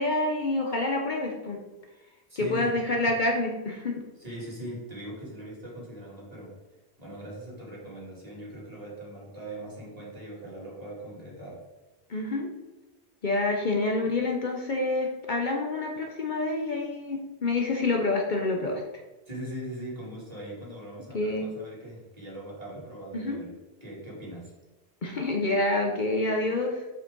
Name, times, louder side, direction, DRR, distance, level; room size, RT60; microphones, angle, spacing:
voice 1, 0.0-1.6 2.4-4.0 12.1-12.5 13.2-18.8 21.1-21.5 23.1-23.4 25.0-26.8, left 2 dB, 50° left, 1 dB, 0.9 m, -27 dB
voice 2, 2.3-2.8 4.2-6.6 7.0-11.6 19.3-24.5, right 1 dB, 35° right, -5 dB, 2.6 m, -40 dB
7.3 x 6.6 x 3.8 m, 1.1 s
omnidirectional pair, 1.1 m